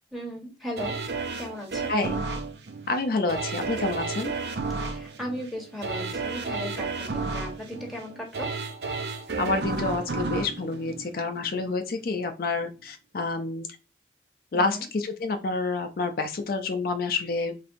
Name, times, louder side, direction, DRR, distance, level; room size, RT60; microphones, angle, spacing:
voice 1, 0.1-0.9 1.4-1.9 4.8-8.5 14.5-14.8, equal, ahead, 0 dB, 1.2 m, -37 dB
sound 1, 0.8-11.7 12.2-12.3, right 4 dB, 70° right, 0.6 m, -32 dB
voice 2, 1.9-2.2 2.9-4.3 9.4-13.7 14.5-17.7, left 3 dB, 55° left, 6 dB, 0.4 m, -28 dB
4.3 x 3.3 x 2.6 m, 0.32 s
head